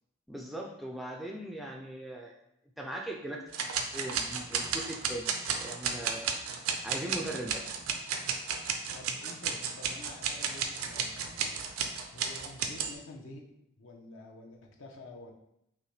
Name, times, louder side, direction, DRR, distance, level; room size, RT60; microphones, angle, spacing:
voice 1, 0.3-2.3 2.8-3.4 3.7-5.3 5.6-6.4 6.8-7.6, right 1 dB, ahead, -1 dB, 0.3 m, -39 dB
sound 1, 3.5-12.9, right 6 dB, 85° right, 0.5 m, -33 dB
voice 2, 8.9-11.7 12.1-13.4 13.8-15.3, left 2 dB, 65° left, 1 dB, 0.7 m, -49 dB
5.5 x 2.2 x 3.1 m, 0.81 s
head